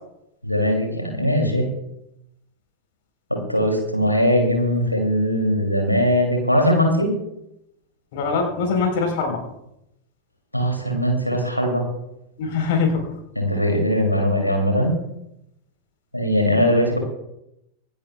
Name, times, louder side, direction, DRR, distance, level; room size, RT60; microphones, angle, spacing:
voice 1, 0.4-1.7 3.3-7.1 10.5-11.9 13.4-14.9 16.1-17.0, equal, 90° left, 2 dB, 2.6 m, -20 dB
voice 2, 8.1-9.5 12.4-13.2, left 4 dB, 50° left, 4 dB, 3.8 m, -23 dB
25.5 x 12.0 x 2.3 m, 0.84 s
figure-of-eight pair, 90°, 0 cm